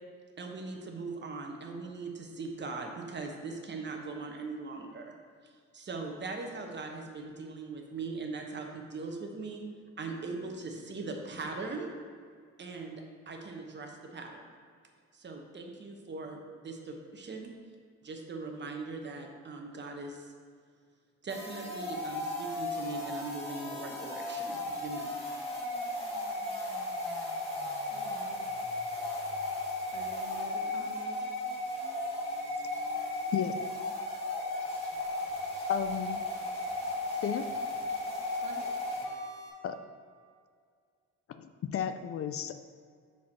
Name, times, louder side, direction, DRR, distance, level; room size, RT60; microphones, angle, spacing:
voice 1, 0.4-5.1 5.4-9.6 10.0-11.9 12.6-14.4 15.1-17.5 18.0-20.3 21.2-25.1, right 3 dB, 35° right, 2 dB, 1.1 m, -40 dB
sound 1, 21.3-39.5, left 2 dB, 20° left, 1.7 m, -35 dB
voice 2, 27.9-28.5 29.9-31.3 38.4-38.8, right 4 dB, 70° right, 2 dB, 1.0 m, -48 dB
voice 3, 35.7-36.2 37.2-37.5 39.6-39.8 41.3-42.5, left 8 dB, 50° left, 9 dB, 0.4 m, -33 dB
4.7 x 4.4 x 5.9 m, 2.1 s
cardioid pair, 90°, 30 cm